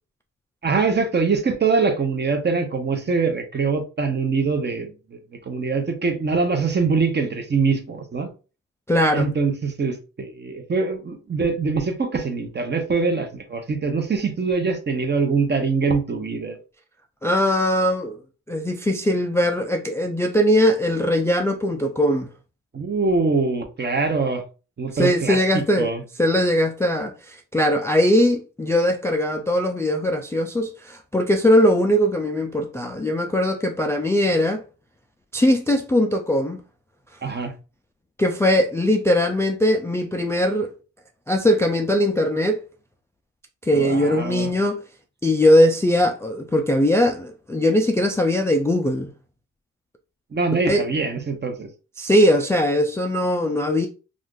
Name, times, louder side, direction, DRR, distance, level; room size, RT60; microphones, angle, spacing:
voice 1, 0.6-5.2 5.5-8.3 9.1-16.6 22.7-24.4 24.8-25.4 25.8-26.0 37.2-37.5 43.7-44.5 50.3-51.7, right 4 dB, 30° right, 0.8 m, -23 dB
voice 2, 8.9-9.3 17.2-18.2 18.5-22.3 24.9-25.9 26.2-34.6 35.3-36.6 38.2-40.7 41.3-42.6 43.6-44.8 45.2-49.1 50.7-50.8 52.0-53.9, left 1 dB, 10° left, 0.3 m, -20 dB
2.5 x 2.4 x 3.7 m
cardioid pair, 65°, 32 cm